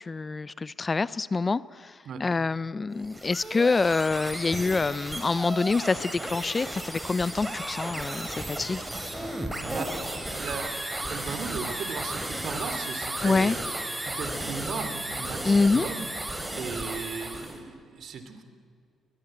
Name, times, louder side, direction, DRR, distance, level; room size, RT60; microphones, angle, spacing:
voice 1, 0.0-1.9 2.2-8.8 13.2-13.6 15.4-15.9, left 3 dB, 30° left, 19 dB, 0.5 m, -26 dB
sound 1, 2.9-17.6, right 1 dB, 15° right, 4.0 m, -34 dB
voice 2, 9.2-10.0 10.3-13.6 14.0-18.4, right 5 dB, 65° right, 9 dB, 2.9 m, -37 dB
23.5 x 20.5 x 8.9 m, 2.2 s
cardioid pair, 90°, 0 cm